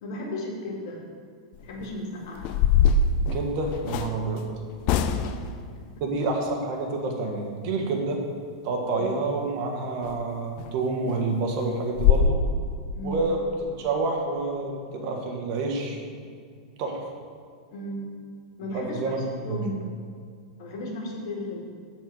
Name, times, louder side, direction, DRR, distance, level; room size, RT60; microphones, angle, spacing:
voice 1, 0.0-1.0 1.6-2.6 5.0-5.4 5.8-5.9 8.9-9.1 12.9-13.2 17.7-18.1 18.6-19.2 19.4-19.8 20.6-21.7, left 1 dB, 65° left, -1 dB, 2.1 m, -35 dB
sound 1, 1.5-1.8 2.4-4.1 4.8-5.5 10.0-10.2 10.6-10.7 11.1-11.2 11.6-11.7 12.0-12.3, left 6 dB, 45° left, 0.5 m, -22 dB
voice 2, 3.3-4.4 6.0-8.2 8.6-12.4 13.0-13.4 13.8-16.0 16.8-17.1 18.7-19.2 19.5-19.6, right 3 dB, 50° right, 1 dB, 1.6 m, -28 dB
8.6 x 4.5 x 6.2 m, 2.1 s
hypercardioid pair, 130°, 3 cm